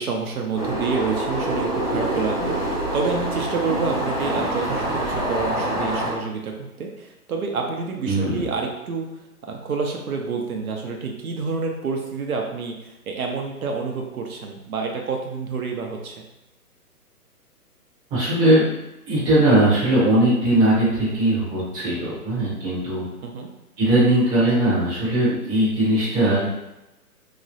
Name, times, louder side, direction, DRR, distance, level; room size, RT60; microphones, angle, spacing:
voice 1, 0.0-9.1 9.4-16.2 23.2-23.5, right 4 dB, 65° right, 2 dB, 0.7 m, -28 dB
sound 1, 0.5-6.1, right 1 dB, 25° left, 0.4 m, -26 dB
voice 2, 8.0-8.5 18.1-18.7 19.1-23.0 23.8-26.5, right 1 dB, 10° right, -11 dB, 0.7 m, -19 dB
3.1 x 2.8 x 2.6 m, 0.95 s
figure-of-eight pair, 135°, 47 cm